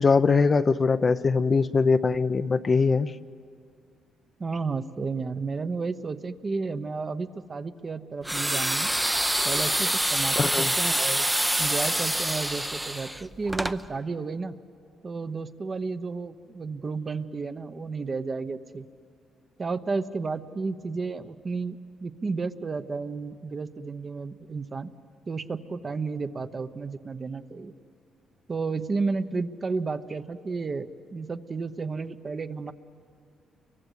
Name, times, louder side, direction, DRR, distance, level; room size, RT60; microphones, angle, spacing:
voice 1, 0.0-3.1 10.4-10.7, left 4 dB, 35° left, 11 dB, 0.6 m, -22 dB
voice 2, 4.4-8.9 9.4-11.3 11.6-14.5 15.0-18.9 19.6-24.9 25.3-27.7 28.5-32.7, right 4 dB, 35° right, 10 dB, 1.0 m, -32 dB
sound 1, 8.2-13.8, right 1 dB, 5° right, 0.7 m, -26 dB
29.5 x 23.5 x 8.3 m, 2.3 s
cardioid pair, 90°, 0 cm